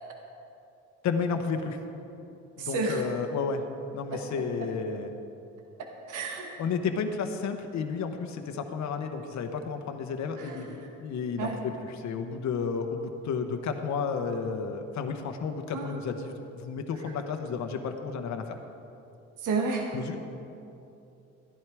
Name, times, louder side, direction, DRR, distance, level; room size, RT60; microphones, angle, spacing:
voice 1, 1.0-1.8 2.6-3.7 3.9-5.1 6.6-18.6 19.9-20.2, left 5 dB, 65° left, 5 dB, 0.9 m, -32 dB
voice 2, 2.6-3.0 4.1-4.2 6.1-6.5 10.4-10.8 11.4-11.6 15.7-16.0 19.4-19.9, right 4 dB, 80° right, 1 dB, 1.5 m, -31 dB
13.0 x 11.0 x 4.7 m, 2.8 s
cardioid pair, 90°, 30 cm